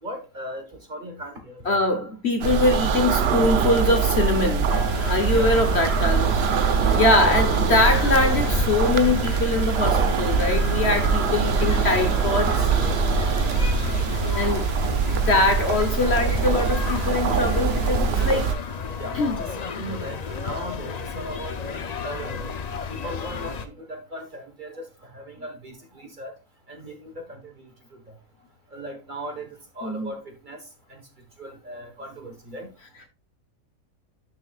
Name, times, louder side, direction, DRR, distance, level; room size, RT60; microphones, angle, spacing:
voice 1, 0.0-1.8 3.2-3.4 4.6-5.0 5.3-5.9 6.4-7.2 11.4-11.6 13.7-14.1 14.9-15.2 17.7-18.5 19.0-22.5 22.9-26.3 26.7-28.2 28.7-31.1 31.4-32.7, right 1 dB, 35° right, 1.3 m, -38 dB
voice 2, 1.6-4.7 5.1-6.4 6.9-12.7 14.4-14.7 15.1-18.4 19.1-19.4 29.8-30.1, left 2 dB, 50° left, 1.0 m, -23 dB
sound 1, 2.4-18.6, right 6 dB, 55° right, 0.7 m, -23 dB
sound 2, 4.7-23.7, left 6 dB, 70° left, 0.4 m, -32 dB
10.5 x 6.4 x 2.3 m
omnidirectional pair, 1.7 m